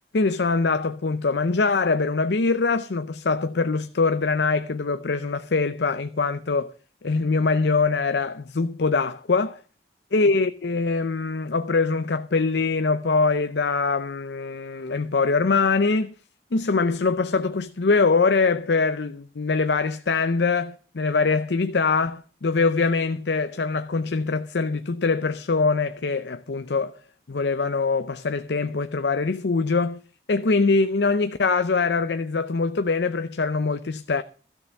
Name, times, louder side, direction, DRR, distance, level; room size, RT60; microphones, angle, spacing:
voice 1, 0.1-6.7 7.0-9.6 10.1-16.1 16.5-26.9 27.3-30.0 30.3-34.2, left 4 dB, 80° left, 0.6 m, -23 dB
13.5 x 6.7 x 7.2 m
head